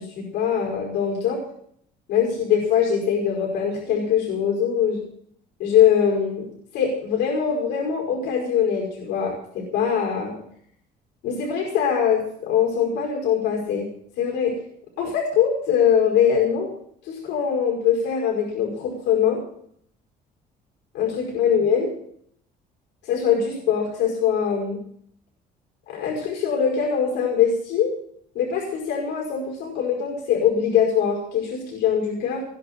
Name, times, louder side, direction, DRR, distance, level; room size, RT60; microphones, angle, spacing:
voice 1, 0.0-1.4 2.1-5.0 5.6-6.5 6.7-10.4 11.2-13.9 14.2-14.5 15.0-16.7 17.0-19.4 20.9-21.9 23.0-24.8 25.9-27.9 28.3-32.4, left 7 dB, 90° left, 0 dB, 5.5 m, -22 dB
20.5 x 12.0 x 4.4 m, 0.65 s
cardioid pair, 110°, 17 cm